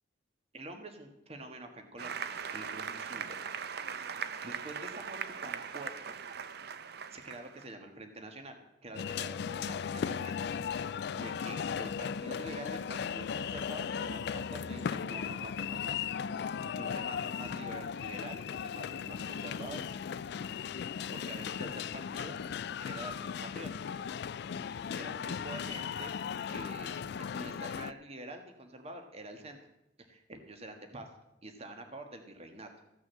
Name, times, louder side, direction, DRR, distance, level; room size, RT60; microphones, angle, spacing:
voice 1, 0.5-2.3 2.5-3.4 4.4-6.1 7.1-16.0 16.7-20.0 21.1-22.4 22.8-23.7 24.9-26.1 26.5-27.0 27.3-29.6 30.1-31.1 31.4-32.7, right 2 dB, 35° right, 5 dB, 1.4 m, -46 dB
Applause, 2.0-7.6, right 7 dB, 55° right, 0.6 m, -40 dB
sound 1, 8.9-27.9, left 7 dB, 60° left, 0.3 m, -37 dB
14.5 x 6.1 x 7.5 m, 0.84 s
head